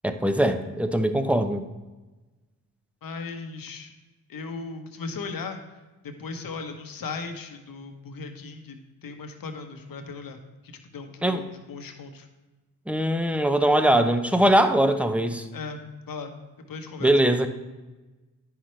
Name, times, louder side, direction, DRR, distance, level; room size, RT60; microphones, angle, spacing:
voice 1, 0.0-1.7 11.2-11.4 12.9-15.5 17.0-17.5, right 1 dB, 5° right, 8 dB, 0.7 m, -21 dB
voice 2, 3.0-3.9 4.3-5.6 6.0-10.4 10.6-12.3 15.0-15.2 15.5-15.8 16.1-16.3 16.7-17.4, left 4 dB, 60° left, 5 dB, 1.2 m, -37 dB
9.8 x 5.8 x 3.2 m, 1.2 s
supercardioid pair, 45°, 39 cm